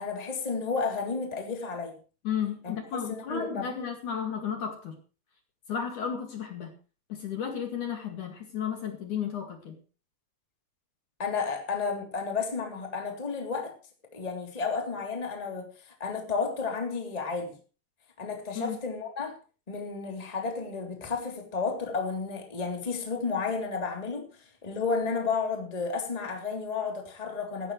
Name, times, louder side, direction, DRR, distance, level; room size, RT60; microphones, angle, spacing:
voice 1, 0.0-2.0 2.6-2.7 3.1-3.9 11.2-13.7 14.1-15.7 16.0-17.5 18.2-19.3 19.7-24.3 24.6-27.7, left 4 dB, 10° left, 2 dB, 2.6 m, -32 dB
voice 2, 2.2-5.0 5.7-6.7 7.1-9.7 18.6-18.8, left 7 dB, 50° left, 3 dB, 3.2 m, -33 dB
17.0 x 14.5 x 3.2 m, 0.36 s
omnidirectional pair, 4.9 m